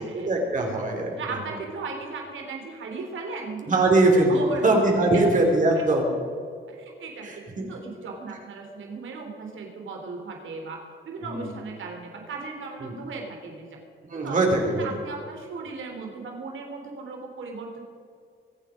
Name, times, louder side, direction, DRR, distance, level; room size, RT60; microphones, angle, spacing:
voice 1, 0.0-1.2 3.7-6.1 7.2-7.7 11.2-11.5 12.8-12.9 14.1-14.9, right 2 dB, 40° right, 1 dB, 3.3 m, -22 dB
voice 2, 1.2-3.8 4.3-4.7 5.1-5.2 5.7-5.8 6.7-7.3 7.7-13.8 14.2-14.4 14.7-17.8, right 4 dB, 75° right, 1 dB, 3.5 m, -36 dB
24.0 x 9.1 x 5.1 m, 2.2 s
wide cardioid pair, 145°, 20 cm